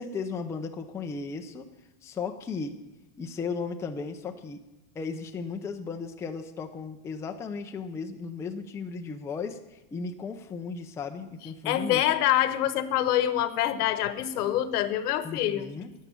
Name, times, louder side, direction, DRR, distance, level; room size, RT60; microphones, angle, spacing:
voice 1, 0.0-1.7 2.0-2.8 3.2-4.6 4.9-12.0 15.2-15.9, left 5 dB, 5° left, 4 dB, 0.4 m, -35 dB
voice 2, 11.6-15.7, left 12 dB, 85° left, 13 dB, 1.3 m, -25 dB
11.5 x 8.2 x 9.1 m, 1.0 s
supercardioid pair, 150°, 45 cm